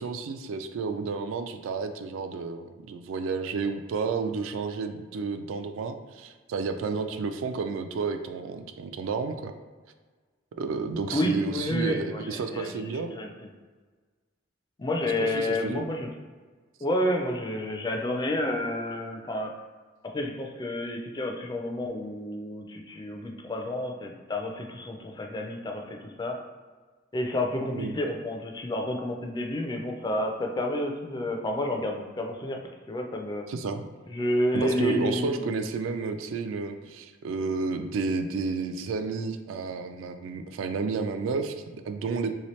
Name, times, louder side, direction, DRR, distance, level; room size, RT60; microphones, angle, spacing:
voice 1, 0.0-9.5 10.6-13.2 15.2-15.9 27.7-28.0 33.5-33.9 34.5-42.4, right 4 dB, 75° right, 7 dB, 0.3 m, -31 dB
voice 2, 11.1-13.3 14.8-16.1 16.8-19.5 20.0-26.4 27.1-32.6 32.9-33.5 34.1-35.4, left 1 dB, 20° left, 2 dB, 0.3 m, -30 dB
3.1 x 2.8 x 3.1 m, 1.4 s
head